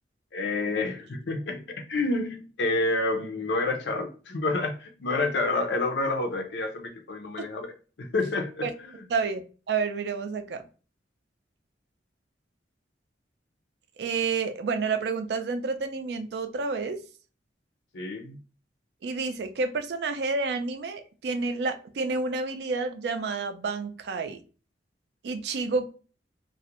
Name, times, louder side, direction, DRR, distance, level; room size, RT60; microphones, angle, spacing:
voice 1, 0.3-7.7 8.0-8.9 17.9-18.4, left 2 dB, 75° left, 0.5 m, -29 dB
voice 2, 9.1-10.6 14.0-17.0 19.0-24.4 25.2-25.9, right 4 dB, 65° right, 0.3 m, -29 dB
2.3 x 2.1 x 2.8 m
head